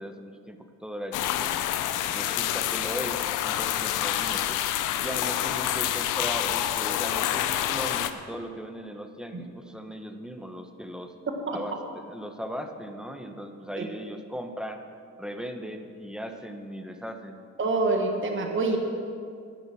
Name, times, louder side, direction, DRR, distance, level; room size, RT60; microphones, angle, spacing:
voice 1, 0.0-1.6 2.0-4.6 5.0-11.1 11.5-14.8 15.2-17.4, equal, 5° right, 6 dB, 1.1 m, -38 dB
sound 1, 1.1-8.1, left 12 dB, 90° left, 0.6 m, -27 dB
voice 2, 17.6-18.8, right 3 dB, 40° right, 3 dB, 1.6 m, -26 dB
10.5 x 10.5 x 6.2 m, 2.3 s
cardioid pair, 90°, 30 cm